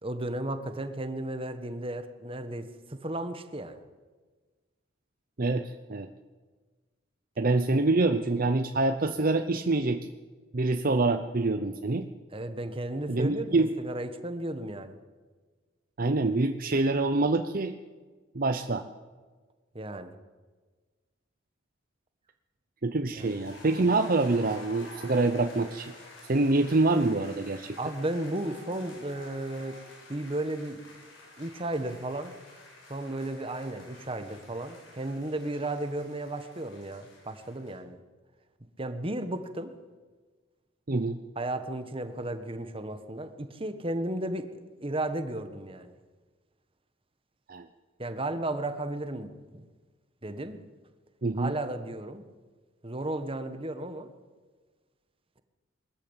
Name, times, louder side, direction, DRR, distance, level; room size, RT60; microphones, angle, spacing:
voice 1, 0.0-3.8 12.3-14.9 19.7-20.1 23.2-23.3 27.8-29.8 30.1-30.9 31.4-32.3 32.9-38.0 38.8-39.7 41.3-44.5 44.8-45.9 48.0-49.6 50.2-50.6 51.4-52.2 52.8-54.1, right 1 dB, 30° right, 9 dB, 1.4 m, -34 dB
voice 2, 5.4-6.1 7.4-10.1 10.5-12.1 13.1-13.7 16.0-17.8 18.3-18.8 22.8-25.9 26.3-27.8 40.9-41.2 47.5-47.7 51.2-51.5, right 2 dB, 50° right, 8 dB, 0.8 m, -26 dB
sound 1, 23.2-37.8, left 2 dB, 90° left, 6.8 m, -50 dB
21.5 x 14.0 x 8.9 m, 1.4 s
head